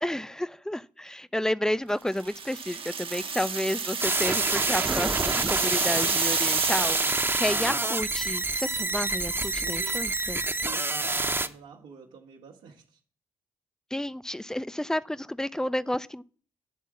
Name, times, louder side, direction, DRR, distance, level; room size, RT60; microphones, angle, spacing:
voice 1, 0.0-10.4 13.9-16.2, left 1 dB, 5° left, 0.4 m, -31 dB
sound 1, 2.1-7.7, right 5 dB, 45° right, 0.8 m, -30 dB
sound 2, 4.0-11.5, right 2 dB, 20° right, 0.8 m, -28 dB
voice 2, 7.0-7.4 9.6-9.9 10.6-12.8, right 6 dB, 90° right, 1.4 m, -47 dB
10.0 x 3.6 x 7.3 m
hypercardioid pair, 45°, 12 cm